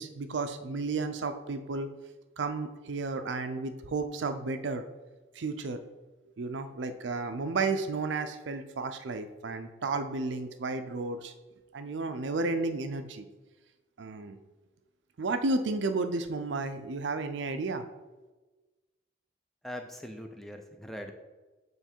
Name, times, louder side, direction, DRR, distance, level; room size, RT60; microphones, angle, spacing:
voice 1, 0.0-1.9 2.4-4.8 5.3-5.8 6.4-11.3 11.7-13.3 14.0-14.4 15.2-17.8, right 3 dB, 85° right, 9 dB, 0.5 m, -32 dB
voice 2, 19.6-21.1, equal, ahead, 4 dB, 0.4 m, -41 dB
6.9 x 3.2 x 4.4 m, 1.2 s
head